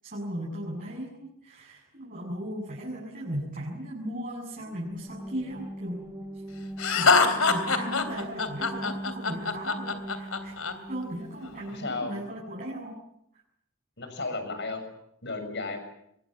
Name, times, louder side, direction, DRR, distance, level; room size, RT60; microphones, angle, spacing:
voice 1, 0.0-6.0 6.3-6.4 6.9-13.0, equal, 40° right, -3 dB, 7.4 m, -37 dB
sound 1, 4.6-12.4, right 1 dB, 15° right, 2.2 m, -41 dB
Laughter, 6.8-10.7, left 4 dB, 75° left, 3.2 m, -24 dB
voice 2, 11.7-12.1 14.0-14.8 15.2-15.8, left 3 dB, 55° left, 8 dB, 7.0 m, -33 dB
25.5 x 22.5 x 9.0 m, 0.76 s
head